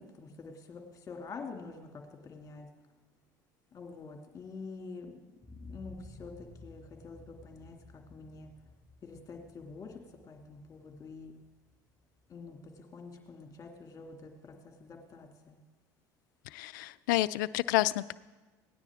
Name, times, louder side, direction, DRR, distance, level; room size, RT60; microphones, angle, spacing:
voice 1, 0.0-2.7 3.7-5.1 5.6-8.5 9.0-11.3 12.3-15.6, left 4 dB, 35° left, 3 dB, 2.2 m, -47 dB
sound 1, 5.4-13.3 13.7-13.8, left 2 dB, 5° right, 4.9 m, -54 dB
voice 2, 16.5-18.1, left 17 dB, 85° left, 16 dB, 0.4 m, -29 dB
17.0 x 9.8 x 3.6 m, 1.2 s
supercardioid pair, 85°, 10 cm